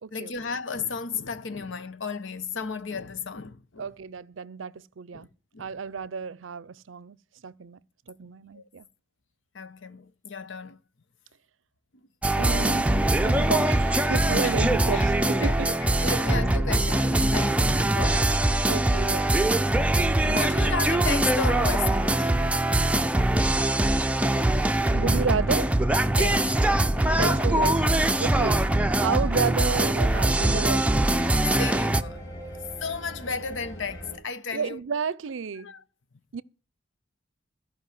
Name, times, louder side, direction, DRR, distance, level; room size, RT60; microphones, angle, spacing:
voice 1, 0.1-3.9 5.1-5.3 5.5-5.7 8.5-8.7 9.5-10.8 14.4-14.5 14.9-15.6 16.0-18.4 20.1-22.3 26.2-27.7 31.5-32.3 32.8-34.8 35.6-35.8, left 5 dB, 70° left, 0.9 m, -34 dB
voice 2, 3.8-5.3 5.6-7.2 7.4-7.8 8.1-8.9 12.4-12.9 13.2-15.7 18.7-19.4 24.9-25.7 27.2-28.7 29.0-31.1 34.5-35.7 36.3-36.4, right 5 dB, 75° right, 0.5 m, -31 dB
sound 1, 12.2-32.0, right 1 dB, 5° right, 0.5 m, -22 dB
sound 2, 24.1-34.2, equal, 20° left, 4.9 m, -42 dB
14.0 x 5.4 x 9.3 m
head